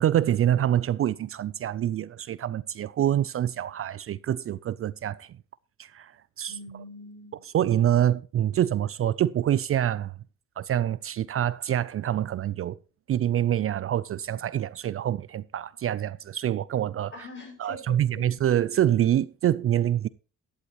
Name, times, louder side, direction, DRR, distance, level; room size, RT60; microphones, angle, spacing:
voice 1, 0.0-5.3 5.8-6.1 6.4-6.5 7.5-10.1 10.6-12.8 13.1-17.1 17.6-20.1, right 11 dB, 45° right, 0.4 m, -26 dB
voice 2, 6.5-7.4 17.1-18.2, left 1 dB, 40° left, 7.0 m, -43 dB
12.0 x 11.5 x 3.0 m
cardioid pair, 90°, 30 cm